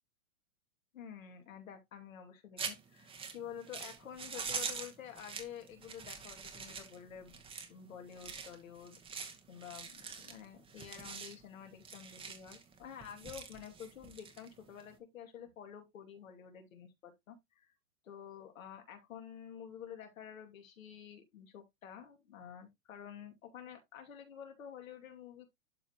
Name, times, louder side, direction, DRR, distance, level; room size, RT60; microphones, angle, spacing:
voice 1, 0.9-7.4 7.7-17.7 18.0-25.5, left 8 dB, 75° left, 2.5 m, -50 dB
sound 1, 2.6-14.9, right 5 dB, 15° right, 1.1 m, -45 dB
11.5 x 3.9 x 2.9 m
hypercardioid pair, 130°, 41 cm